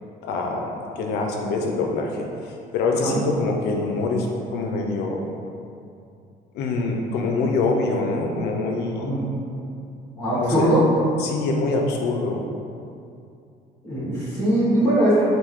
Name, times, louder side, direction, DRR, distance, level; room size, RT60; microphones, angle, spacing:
voice 1, 0.2-2.2 2.7-5.2 6.5-9.1 10.3-10.7 11.2-12.4, left 3 dB, 80° left, 1 dB, 0.5 m, -24 dB
voice 2, 8.9-9.3 10.2-10.8 13.8-15.3, right 1 dB, 15° left, -12 dB, 1.4 m, -21 dB
3.6 x 2.6 x 3.0 m, 2.5 s
cardioid pair, 110°, 17 cm